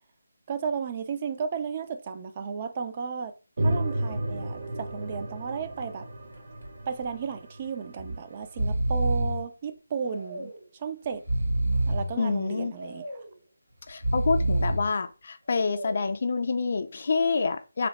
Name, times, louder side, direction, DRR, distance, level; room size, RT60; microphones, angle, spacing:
voice 1, 0.5-6.1 6.9-11.2 11.9-13.0, right 6 dB, 30° right, 0.4 m, -34 dB
sound 1, 3.6-8.2, right 1 dB, 55° right, 1.0 m, -32 dB
Breathing, 6.3-6.7 7.0-7.1 8.0-8.2 8.4-9.4 10.0-10.7 11.1-12.1 12.7-13.4 13.9-14.9 15.5-16.1, right 1 dB, 90° right, 1.9 m, -28 dB
voice 2, 12.2-12.8 13.9-17.9, left 4 dB, 50° left, 0.4 m, -27 dB
3.0 x 2.1 x 4.0 m
figure-of-eight pair, 160°, 0 cm